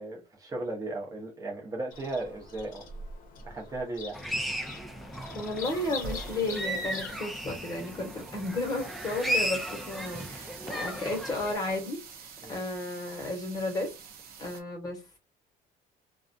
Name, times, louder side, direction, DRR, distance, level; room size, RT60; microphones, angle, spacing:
voice 1, 0.0-2.9 3.4-4.2 12.4-12.6, right 2 dB, 20° right, 0.8 m, -36 dB
Bird vocalization bird call bird song, 1.9-7.2, left 4 dB, 55° left, 0.7 m, -44 dB
sound 1, 4.1-11.5, right 1 dB, ahead, 0.3 m, -35 dB
voice 2, 5.3-13.9 14.4-15.0, left 2 dB, 20° left, 1.0 m, -33 dB
sound 2, 5.6-14.6, right 5 dB, 60° right, 0.6 m, -46 dB
2.4 x 2.2 x 2.5 m
cardioid pair, 145°, 17 cm